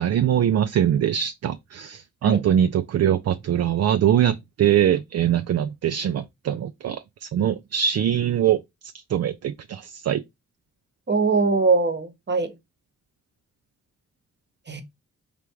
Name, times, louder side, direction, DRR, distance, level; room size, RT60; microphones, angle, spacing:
voice 1, 0.0-8.6 9.1-10.2, right 10 dB, 55° right, 0.4 m, -22 dB
voice 2, 11.1-12.5 14.7-14.8, right 4 dB, 35° right, 1.0 m, -21 dB
3.4 x 2.5 x 4.4 m
cardioid pair, 55°, 30 cm